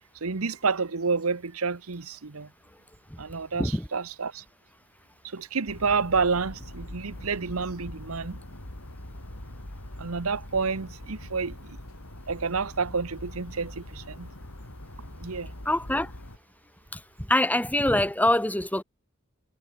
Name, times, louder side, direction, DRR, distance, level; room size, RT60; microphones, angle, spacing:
voice 1, 0.2-2.5 3.2-4.4 5.2-8.4 10.0-11.6 12.3-14.3 15.2-15.5, right 4 dB, 80° right, 1.1 m, -29 dB
sound 1, 5.7-16.4, left 1 dB, 80° left, 3.9 m, -43 dB
voice 2, 15.6-16.1 17.3-18.8, left 1 dB, 5° left, 3.0 m, -24 dB
head